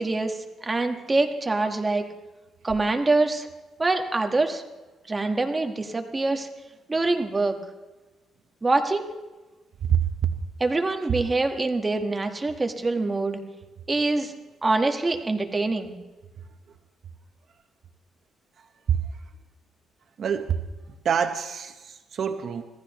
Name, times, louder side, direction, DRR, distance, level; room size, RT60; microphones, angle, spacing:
voice 1, 0.0-2.1 2.6-3.5 3.8-4.6 5.1-6.5 6.9-7.6 8.6-9.1 10.6-13.4 13.9-14.3 14.6-15.9, right 3 dB, 20° right, 5 dB, 1.4 m, -25 dB
voice 2, 20.2-20.6 21.0-22.6, right 8 dB, 55° right, 7 dB, 0.9 m, -25 dB
25.5 x 15.5 x 3.0 m, 1.1 s
cardioid pair, 125°, 0 cm